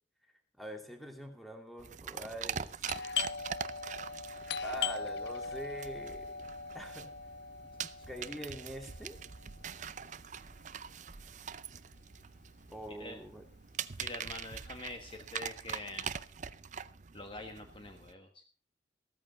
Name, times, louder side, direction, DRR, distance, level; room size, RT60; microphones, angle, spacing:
voice 1, 0.6-2.9 4.6-6.4 6.7-7.1 8.1-9.2 12.7-13.5, equal, ahead, 4 dB, 2.6 m, -44 dB
sound 1, 1.8-18.1, right 7 dB, 45° right, 0.6 m, -43 dB
Doorbell, 2.8-12.2 12.5-12.6 13.2-13.5 13.9-15.3, left 6 dB, 65° left, 0.6 m, -40 dB
voice 2, 14.0-16.2 17.1-18.4, left 2 dB, 30° left, 5 dB, 1.4 m, -45 dB
15.5 x 14.0 x 4.0 m, 0.40 s
head